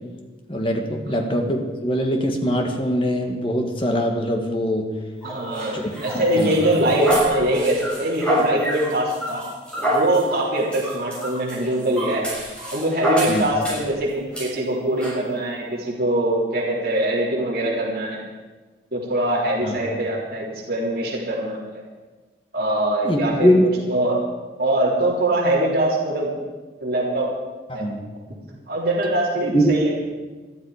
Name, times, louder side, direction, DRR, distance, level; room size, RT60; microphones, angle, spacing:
voice 1, 0.5-4.9 5.7-5.8 6.1-6.6 13.3-13.4 19.6-19.7 23.0-23.6 27.7-28.0 29.4-29.7, equal, 30° left, 2 dB, 2.0 m, -22 dB
sound 1, 5.2-13.9 14.3-14.5 15.0-15.2, right 1 dB, 5° left, 7.0 m, -27 dB
voice 2, 5.2-9.4 9.9-12.2 12.7-18.2 18.9-21.8 22.5-23.6 23.9-24.2 24.6-26.3 26.8-27.3 27.7-27.8 28.7-29.9, right 1 dB, 50° right, -6 dB, 3.7 m, -23 dB
21.5 x 12.5 x 5.2 m, 1.3 s
head